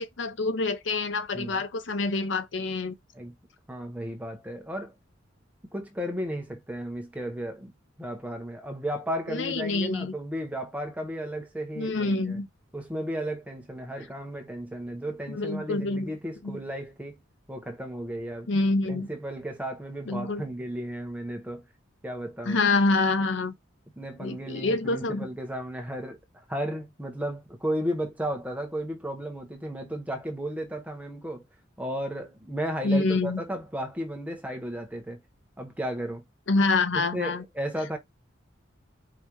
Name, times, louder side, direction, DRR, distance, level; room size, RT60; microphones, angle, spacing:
voice 1, 0.0-3.0 9.3-10.1 11.8-12.5 15.3-16.1 16.4-16.6 18.5-19.1 20.1-20.4 22.5-23.5 24.2-25.3 32.8-33.4 36.5-37.4, left 3 dB, 65° left, 0.7 m, -26 dB
voice 2, 1.3-1.6 3.1-3.3 3.7-5.0 5.7-7.7 8.0-12.4 12.7-17.2 17.5-18.5 18.9-21.6 22.0-22.6 24.0-31.4 31.8-35.2 35.6-36.2 36.9-38.0, equal, 10° right, 1.0 m, -34 dB
4.8 x 3.3 x 3.0 m
head